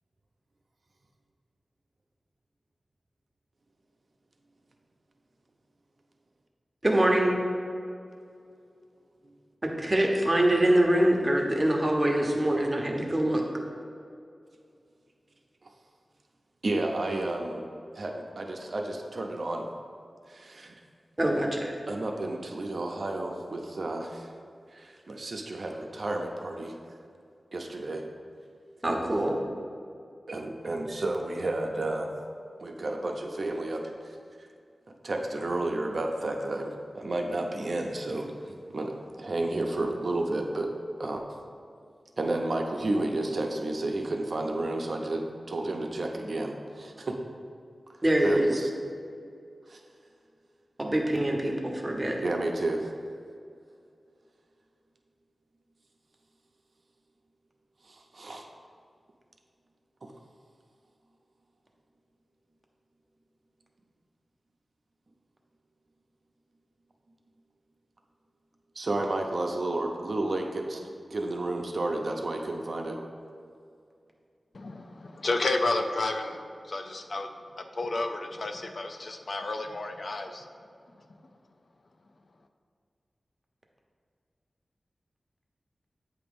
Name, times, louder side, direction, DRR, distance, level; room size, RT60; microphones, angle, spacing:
voice 1, 6.8-7.3 9.6-13.4 21.2-21.7 28.8-29.4 48.0-48.5 50.8-52.2, right 1 dB, 25° right, 0 dB, 0.9 m, -24 dB
voice 2, 16.6-17.6 17.9-19.7 20.3-20.8 21.9-24.3 24.7-26.7 27.5-28.0 30.3-32.1 32.6-34.2 35.0-40.7 41.0-41.2 42.2-47.2 48.2-48.7 49.7-49.8 52.2-52.9 57.8-58.4 68.8-73.0, right 2 dB, 60° right, 2 dB, 0.6 m, -31 dB
voice 3, 74.5-76.4 76.6-77.3 77.6-80.5, left 2 dB, 60° left, 6 dB, 0.4 m, -31 dB
8.5 x 2.9 x 5.3 m, 2.4 s
wide cardioid pair, 90°, 0 cm